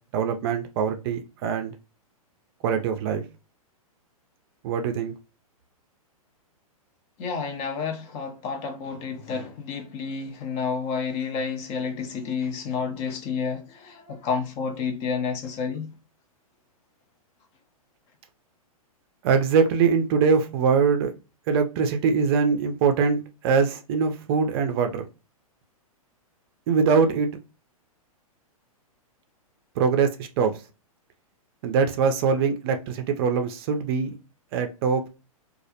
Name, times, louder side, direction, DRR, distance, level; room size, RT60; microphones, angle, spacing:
voice 1, 0.1-1.7 2.6-3.2 4.6-5.1 19.2-21.1 21.5-25.0 26.7-27.3 29.8-30.5 31.6-34.2 34.5-35.0, right 5 dB, 40° right, 0.4 m, -23 dB
voice 2, 7.2-15.9, left 5 dB, 35° left, 0.6 m, -30 dB
2.4 x 2.0 x 2.7 m
hypercardioid pair, 115°, 19 cm